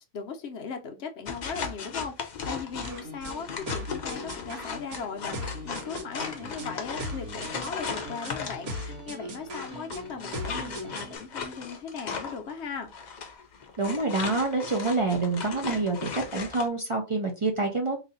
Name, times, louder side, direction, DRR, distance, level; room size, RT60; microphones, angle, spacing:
voice 1, 0.1-12.9, left 5 dB, 55° left, 0.9 m, -38 dB
sound 1, 1.2-9.0 9.5-16.7, left 5 dB, 85° left, 0.4 m, -37 dB
sound 2, 2.8-11.2, left 1 dB, 70° right, 1.5 m, -39 dB
voice 2, 13.8-18.0, right 3 dB, 55° right, 0.3 m, -27 dB
3.2 x 2.7 x 3.8 m
omnidirectional pair, 1.6 m